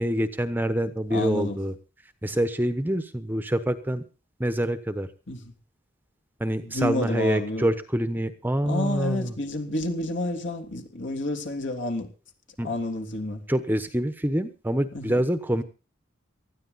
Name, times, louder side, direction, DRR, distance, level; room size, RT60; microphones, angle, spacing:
voice 1, 0.0-1.7 2.2-4.0 4.4-5.1 6.4-9.3 12.6-12.7 13.5-15.6, right 1 dB, 10° right, 1.0 m, -26 dB
voice 2, 1.1-1.6 5.3-5.5 6.6-7.7 8.6-12.1 12.6-13.4 14.9-15.2, left 2 dB, 65° left, 3.2 m, -29 dB
19.0 x 13.5 x 4.1 m
head